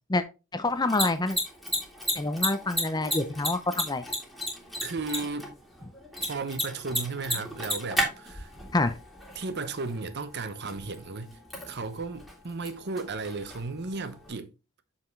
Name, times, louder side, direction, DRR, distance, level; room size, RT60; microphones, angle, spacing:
voice 1, 0.5-1.4 2.1-4.0 8.7-8.9, left 2 dB, 20° left, 0.6 m, -27 dB
Mechanisms, 0.7-14.3, equal, ahead, 2.3 m, -35 dB
voice 2, 4.8-5.5 6.3-8.5 9.3-11.3 11.7-14.5, right 3 dB, 50° right, 0.8 m, -34 dB
7.1 x 5.8 x 3.2 m
head